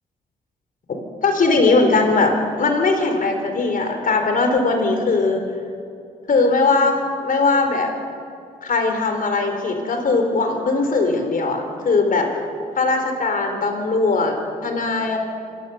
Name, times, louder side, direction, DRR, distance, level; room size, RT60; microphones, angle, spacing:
voice 1, 0.9-5.4 6.3-7.9 8.6-12.3 12.8-14.3 14.6-15.2, left 3 dB, 60° left, 4 dB, 4.0 m, -19 dB
27.0 x 14.0 x 7.0 m, 2.5 s
supercardioid pair, 55°, 16 cm